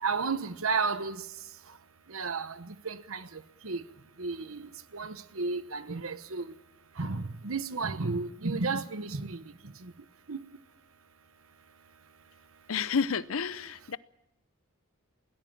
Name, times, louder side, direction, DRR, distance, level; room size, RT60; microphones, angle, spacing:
voice 1, 0.0-1.2 2.1-2.6 2.8-3.3 3.6-3.8 4.2-6.4 7.0-9.4 9.8-9.9 10.3-10.4, right 4 dB, 85° right, 1.1 m, -32 dB
voice 2, 12.7-14.0, left 6 dB, 80° left, 0.7 m, -30 dB
21.0 x 18.5 x 7.4 m
head